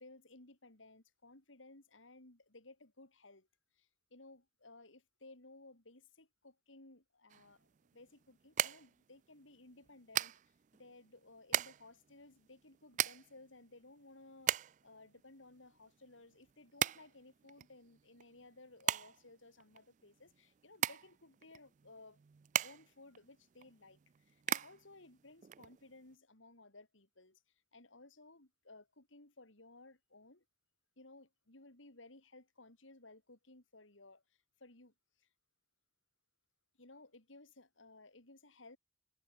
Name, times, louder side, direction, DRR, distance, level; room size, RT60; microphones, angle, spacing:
voice 1, 0.0-3.5 3.7-10.3 10.7-14.5 14.8-22.2 22.6-30.4 31.0-35.3 36.8-38.8, left 2 dB, 80° left, 3.9 m, -59 dB
sound 1, 7.3-26.1, right 11 dB, 40° right, 0.3 m, -40 dB
head